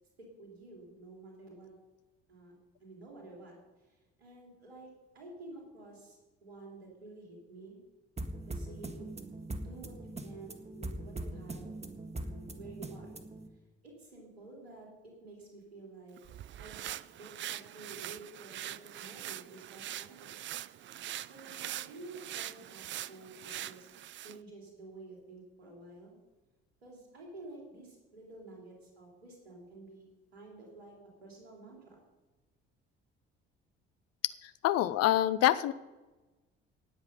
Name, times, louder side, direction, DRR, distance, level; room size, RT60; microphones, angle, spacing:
voice 1, 0.2-1.7 2.3-2.6 2.8-3.5 4.2-7.8 8.5-9.1 9.6-9.9 10.2-11.7 12.2-13.1 13.8-14.9 15.2-16.2 16.6-16.9 17.2-20.5 21.3-23.9 24.2-26.1 26.8-30.1 30.3-30.9 31.2-32.0, right 2 dB, 80° right, -1 dB, 3.7 m, -51 dB
sound 1, 8.2-13.5, right 1 dB, 20° right, 1.6 m, -41 dB
sound 2, 16.2-24.4, right 12 dB, 40° right, 0.5 m, -43 dB
voice 2, 34.6-35.7, left 13 dB, 55° left, 16 dB, 0.7 m, -25 dB
18.5 x 8.0 x 5.5 m, 1.2 s
figure-of-eight pair, 50°, 31 cm